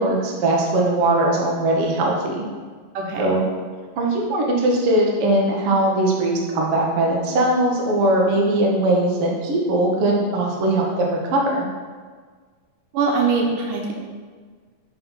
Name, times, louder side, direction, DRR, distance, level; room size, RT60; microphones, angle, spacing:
voice 1, 0.0-2.4 3.2-3.4 4.0-11.7, right 1 dB, 65° right, -2 dB, 1.5 m, -20 dB
voice 2, 2.9-3.4 12.9-13.9, right 4 dB, 85° right, 0 dB, 2.5 m, -22 dB
5.5 x 4.0 x 5.4 m, 1.5 s
omnidirectional pair, 3.7 m